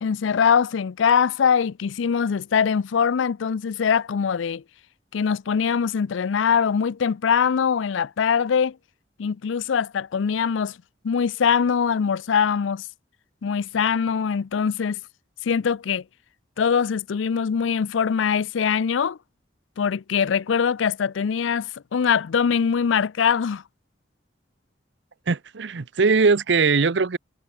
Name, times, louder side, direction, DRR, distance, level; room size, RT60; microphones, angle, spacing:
voice 1, 0.0-4.6 5.1-8.8 9.2-10.8 11.0-12.9 13.4-15.0 15.4-16.0 16.6-19.2 19.8-23.6, left 6 dB, 90° left, 0.4 m, -22 dB
voice 2, 25.3-27.2, right 4 dB, 70° right, 0.7 m, -20 dB
head